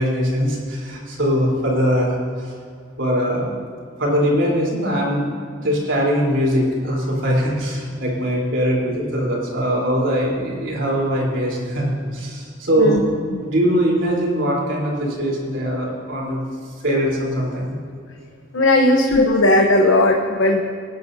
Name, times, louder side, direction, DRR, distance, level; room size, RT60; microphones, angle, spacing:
voice 1, 0.0-2.5 3.0-3.5 4.0-5.3 5.6-13.0 13.4-16.4 16.8-17.8 18.8-18.9, equal, 70° right, -3 dB, 3.6 m, -21 dB
voice 2, 18.5-20.6, left 1 dB, 90° left, 2 dB, 0.9 m, -16 dB
23.5 x 10.5 x 2.7 m, 2.1 s
head